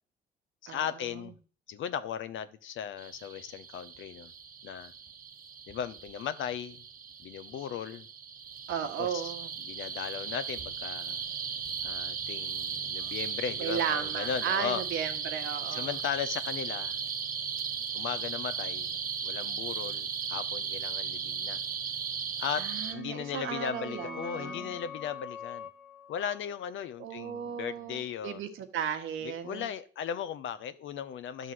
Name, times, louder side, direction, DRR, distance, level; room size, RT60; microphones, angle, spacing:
voice 1, 0.6-1.3 1.7-4.3 4.6-4.9 5.7-6.8 7.2-8.1 9.0-9.3 9.6-11.2 11.8-14.8 15.7-17.0 17.9-18.9 19.2-21.6 22.4-22.6 22.9-25.7 26.1-28.4 29.2-31.5, left 8 dB, 75° left, 12 dB, 1.0 m, -37 dB
sound 1, 3.0-22.9, right 6 dB, 45° right, 1.1 m, -36 dB
voice 2, 8.7-9.5 13.0-13.1 13.6-15.9 22.6-24.7 27.0-29.7, right 8 dB, 80° right, 6 dB, 1.4 m, -35 dB
sound 2, 22.7-28.1, left 5 dB, ahead, 1.0 m, -45 dB
11.0 x 4.0 x 7.7 m, 0.41 s
cardioid pair, 90°, 20 cm